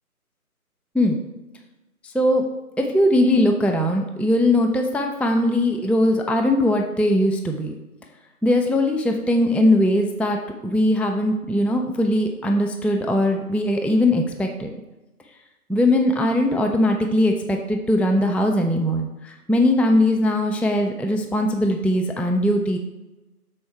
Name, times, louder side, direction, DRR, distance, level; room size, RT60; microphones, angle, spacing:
voice 1, 2.8-7.7 8.4-14.7 15.7-22.8, left 1 dB, 5° left, 3 dB, 0.3 m, -20 dB
7.0 x 4.2 x 4.5 m, 1.0 s
figure-of-eight pair, 175°, 46 cm